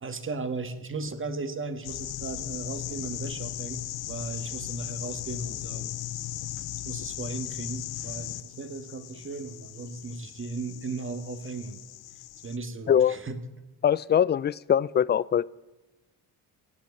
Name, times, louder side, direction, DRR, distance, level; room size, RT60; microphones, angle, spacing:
voice 1, 0.0-6.0 6.6-11.8 12.4-13.4, right 3 dB, 35° right, 9 dB, 1.6 m, -36 dB
sound 1, 1.8-12.6, left 15 dB, 80° left, 0.7 m, -37 dB
voice 2, 13.8-15.4, left 9 dB, 30° left, 22 dB, 0.4 m, -22 dB
18.0 x 8.2 x 7.1 m, 1.1 s
cardioid pair, 70°, 38 cm